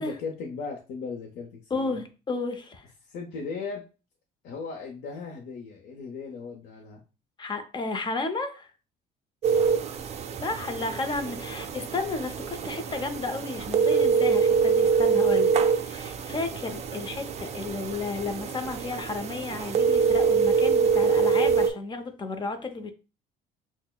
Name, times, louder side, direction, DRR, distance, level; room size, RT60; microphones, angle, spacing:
voice 1, 0.0-2.0 3.0-3.8 4.4-7.0 9.4-9.8, left 4 dB, 80° left, 0.7 m, -37 dB
voice 2, 1.7-2.9 7.4-8.7 10.4-15.5 15.8-22.9, left 3 dB, 25° left, 0.6 m, -32 dB
sound 1, 9.4-21.7, right 5 dB, 40° right, 0.4 m, -25 dB
6.0 x 2.1 x 2.2 m
cardioid pair, 110°, 17 cm